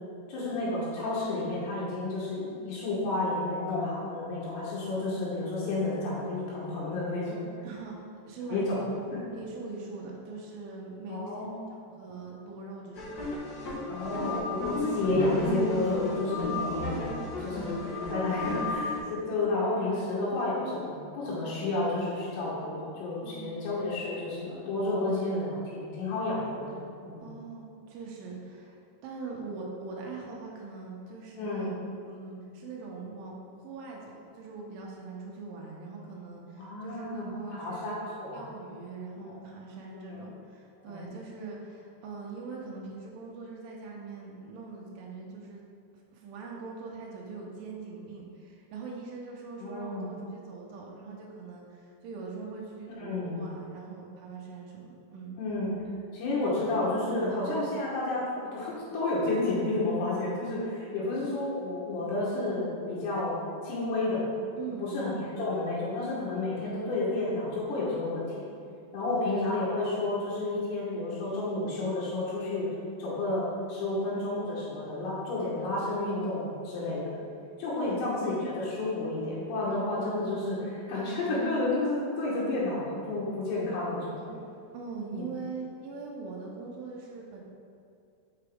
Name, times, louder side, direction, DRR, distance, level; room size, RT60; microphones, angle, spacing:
voice 1, 0.3-7.4 8.5-8.8 9.1-9.2 11.1-11.6 13.9-27.3 31.4-31.7 36.6-38.4 39.2-39.4 40.1-40.2 40.9-41.0 49.6-50.1 52.9-53.4 55.4-55.7 56.1-64.2 64.8-68.5 68.9-72.7 73.0-77.1 77.6-84.3 85.1-85.2, left 2 dB, 85° left, -7 dB, 3.3 m, -31 dB
voice 2, 7.6-9.0 9.3-13.1 23.2-23.8 27.2-38.0 38.3-45.6 46.1-55.4 64.6-64.9 69.1-69.3 77.8-78.0 84.7-87.4, right 4 dB, 90° right, -2 dB, 1.9 m, -42 dB
sound 1, 12.9-19.0, left 2 dB, 65° left, 1.7 m, -33 dB
6.0 x 5.8 x 3.5 m, 2.5 s
omnidirectional pair, 5.0 m